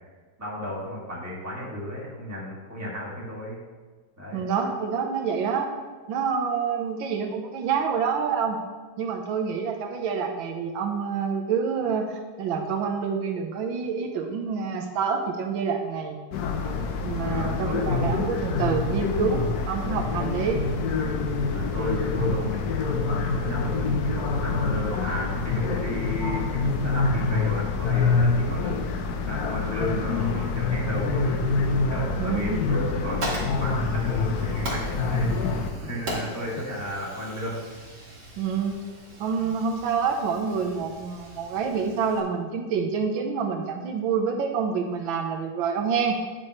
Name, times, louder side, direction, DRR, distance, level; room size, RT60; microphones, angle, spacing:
voice 1, 0.4-3.6 4.2-4.5 17.2-18.1 21.5-28.8 29.3-31.5 31.9-37.6, left 1 dB, 10° right, -5 dB, 1.9 m, -33 dB
voice 2, 4.3-5.7 6.1-8.6 9.0-16.2 17.0-20.6 32.2-32.7 38.4-38.9 39.2-46.2, right 6 dB, 90° right, 3 dB, 1.6 m, -27 dB
sound 1, 16.3-35.7, left 4 dB, 65° left, 1.1 m, -26 dB
Fire, 32.8-42.2, right 1 dB, 60° right, 2.5 m, -39 dB
10.0 x 6.1 x 3.1 m, 1.4 s
omnidirectional pair, 2.1 m